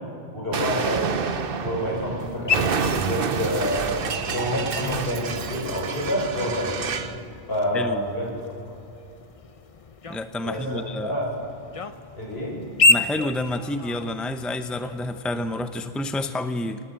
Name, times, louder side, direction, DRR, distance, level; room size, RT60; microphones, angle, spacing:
voice 1, 0.3-1.2 1.6-6.8 7.5-8.3 10.4-11.3 12.2-12.6, equal, 70° left, -2 dB, 6.9 m, -28 dB
Explosion, 0.5-7.2, right 6 dB, 60° right, 1.1 m, -29 dB
sound 1, 0.7-7.2, right 1 dB, 40° right, 3.8 m, -41 dB
sound 2, 2.2-16.3, left 3 dB, 35° left, 0.9 m, -31 dB
voice 2, 10.1-11.2 12.9-16.8, left 1 dB, ahead, 8 dB, 0.8 m, -29 dB
26.0 x 19.0 x 8.9 m, 2.6 s
omnidirectional pair, 1.1 m